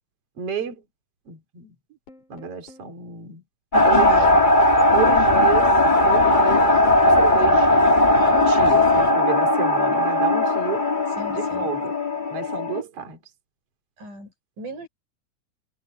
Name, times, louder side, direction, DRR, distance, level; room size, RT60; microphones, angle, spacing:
voice 1, 0.4-0.8 1.3-1.7 2.3-3.4 3.8-4.5 4.9-6.7 7.0-7.9 8.2-10.9 11.3-12.0 12.3-13.2, right 7 dB, 50° right, 4.2 m, -31 dB
sound 1, 2.1-2.9 3.9-4.2 4.8-6.3 6.6-7.2, left 5 dB, 70° left, 9.3 m, -42 dB
sound 2, 3.7-12.8, left 1 dB, 20° left, 1.6 m, -18 dB
voice 2, 3.7-4.4 11.2-11.7 14.0-14.9, right 1 dB, 80° right, 8.3 m, -37 dB
omnidirectional pair, 3.6 m